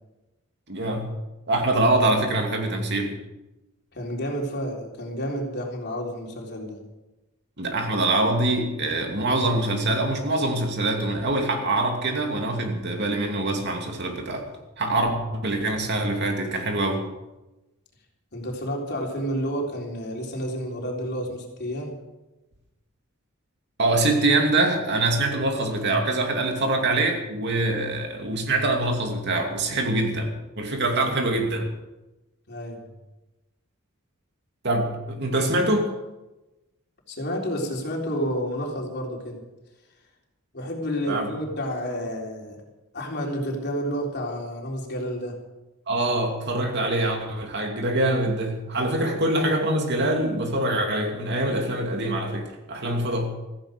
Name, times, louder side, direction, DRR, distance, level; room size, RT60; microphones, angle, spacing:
voice 1, 0.7-1.1 1.5-3.1 7.6-14.4 14.8-17.0 23.8-30.3 30.6-31.7 34.6-35.9 41.1-41.3 45.9-53.3, right 2 dB, 55° right, 3 dB, 2.6 m, -24 dB
voice 2, 3.9-6.8 18.3-21.9 32.5-32.8 37.1-39.4 40.5-42.6 42.9-45.3, equal, 55° left, 0 dB, 3.7 m, -30 dB
16.0 x 14.5 x 5.2 m, 1.0 s
head